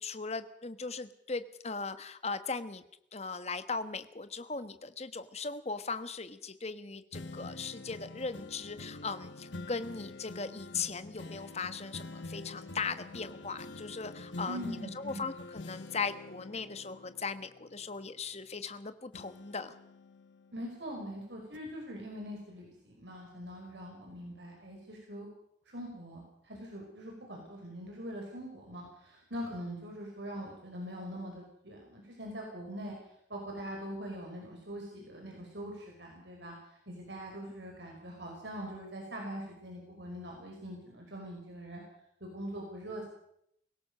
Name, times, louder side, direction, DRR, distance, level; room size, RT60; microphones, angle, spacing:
voice 1, 0.0-2.8 3.1-19.7, left 4 dB, 35° left, 12 dB, 1.3 m, -38 dB
sound 1, 7.1-18.8 19.1-21.0 21.5-21.6, left 2 dB, 85° left, 1.5 m, -47 dB
voice 2, 14.5-15.3 20.5-25.3 25.7-41.8 42.2-43.1, equal, 70° right, 0 dB, 5.3 m, -43 dB
24.0 x 17.0 x 6.7 m, 0.74 s
head